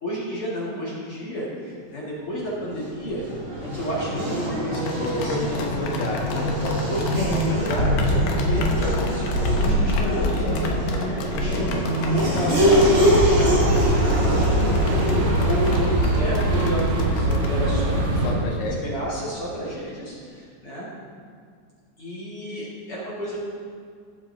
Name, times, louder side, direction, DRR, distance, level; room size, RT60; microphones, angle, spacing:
voice 1, 0.0-3.2 3.6-5.4 6.9-10.7 11.0-14.5 14.7-14.9 15.4-18.0 18.8-20.9 22.0-23.4, equal, 50° left, -8 dB, 1.7 m, -31 dB
Race car auto racing / Accelerating revving vroom, 2.7-18.3, equal, 35° right, 2.7 m, -23 dB
sound 1, 4.7-17.6, left 5 dB, 85° left, 1.8 m, -35 dB
voice 2, 5.0-7.0 11.1-11.6 17.9-18.9, left 2 dB, 65° left, -1 dB, 2.8 m, -31 dB
sound 2, 12.5-18.4, right 1 dB, 70° right, 3.4 m, -23 dB
19.5 x 7.5 x 2.7 m, 2.1 s
omnidirectional pair, 5.3 m